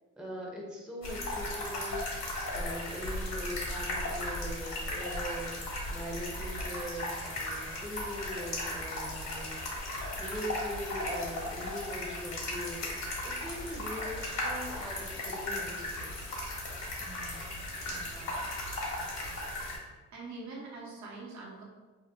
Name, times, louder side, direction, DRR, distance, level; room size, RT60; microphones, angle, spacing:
voice 1, 0.2-5.6 5.9-9.6 10.1-16.2, equal, 5° right, -3 dB, 0.6 m, -41 dB
sound 1, 1.0-19.8, left 1 dB, 60° left, 1.0 m, -36 dB
voice 2, 17.0-17.6 17.9-18.5 19.2-19.5 20.1-21.6, right 3 dB, 65° right, -3 dB, 0.8 m, -46 dB
2.7 x 2.1 x 3.4 m, 1.3 s
cardioid pair, 90°, 30 cm